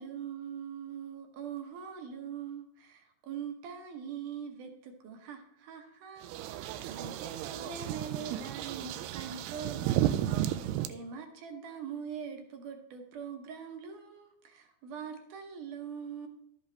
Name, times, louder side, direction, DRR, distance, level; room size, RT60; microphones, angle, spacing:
voice 1, 0.0-16.3, right 7 dB, 65° right, 4 dB, 2.2 m, -43 dB
sound 1, 6.2-10.9, right 13 dB, 85° right, 2.5 m, -33 dB
12.5 x 7.9 x 3.3 m, 0.76 s
omnidirectional pair, 4.5 m